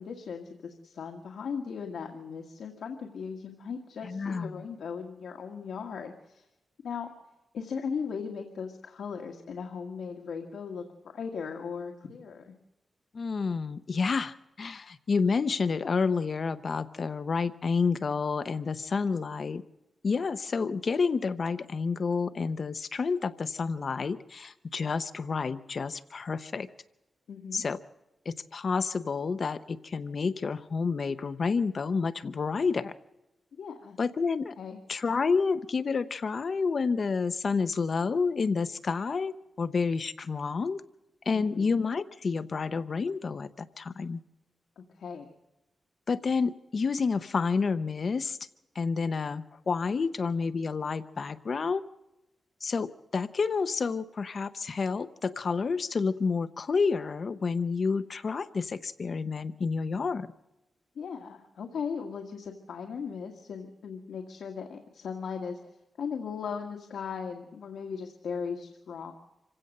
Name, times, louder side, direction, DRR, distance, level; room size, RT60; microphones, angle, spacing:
voice 1, 0.0-6.5 6.8-7.1 7.5-12.5 27.3-27.6 33.5-34.0 34.6-34.8 41.3-41.8 44.8-45.3 61.0-69.1, left 6 dB, 75° left, 2 dB, 1.8 m, -38 dB
voice 2, 4.0-4.6 13.1-19.6 20.0-26.7 27.5-27.8 28.3-32.9 34.0-34.5 34.9-40.8 41.2-44.2 46.1-48.4 48.7-51.8 52.6-60.3, left 5 dB, 40° left, 12 dB, 0.7 m, -29 dB
27.0 x 16.5 x 6.6 m, 0.94 s
wide cardioid pair, 155°, 0 cm